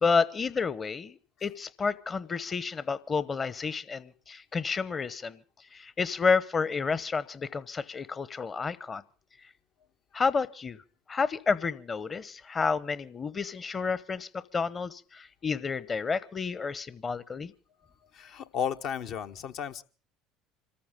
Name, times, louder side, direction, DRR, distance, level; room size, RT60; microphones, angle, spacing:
voice 1, 0.0-5.4 5.7-9.0 10.1-10.8 11.1-17.5, left 5 dB, 30° left, 18 dB, 0.9 m, -30 dB
voice 2, 18.1-19.8, left 8 dB, 60° left, 7 dB, 0.9 m, -33 dB
26.0 x 14.0 x 3.6 m, 0.37 s
hypercardioid pair, 70°, 0 cm